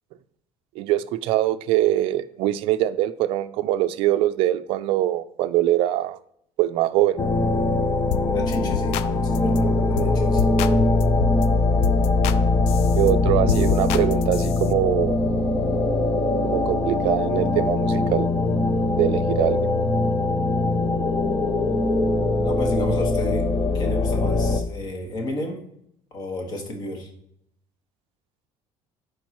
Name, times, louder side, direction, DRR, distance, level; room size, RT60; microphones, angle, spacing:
voice 1, 0.8-6.2 6.6-7.2 13.0-15.2 16.4-18.3 19.0-19.6, right 14 dB, 60° right, 11 dB, 0.4 m, -23 dB
sound 1, 7.2-24.6, left 2 dB, 20° left, 0.6 m, -22 dB
sound 2, 8.1-8.3 8.5-9.1 9.3-9.6 10.0-10.1 10.4-11.4 11.8-12.4 12.7-14.7, left 10 dB, 70° left, 0.4 m, -28 dB
voice 2, 8.3-10.4 22.4-23.5 23.7-25.6 26.1-27.1, left 1 dB, 40° left, 3 dB, 1.6 m, -31 dB
11.5 x 4.7 x 3.0 m, 0.71 s
cardioid pair, 170°, 11 cm